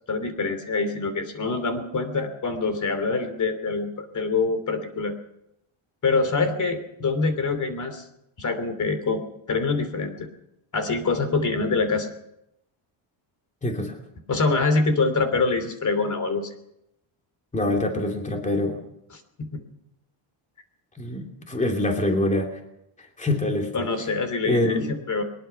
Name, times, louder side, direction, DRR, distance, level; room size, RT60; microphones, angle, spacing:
voice 1, 0.1-5.1 6.0-8.0 8.4-9.2 9.5-10.3 10.7-12.1 14.3-16.5 19.1-19.6 23.7-25.2, left 3 dB, 35° left, 9 dB, 3.1 m, -25 dB
voice 2, 13.6-14.0 17.5-18.8 21.0-22.6 23.2-23.7 24.4-24.9, left 1 dB, 15° left, 3 dB, 2.9 m, -25 dB
22.0 x 21.0 x 5.9 m, 0.81 s
cardioid pair, 160°, 50 cm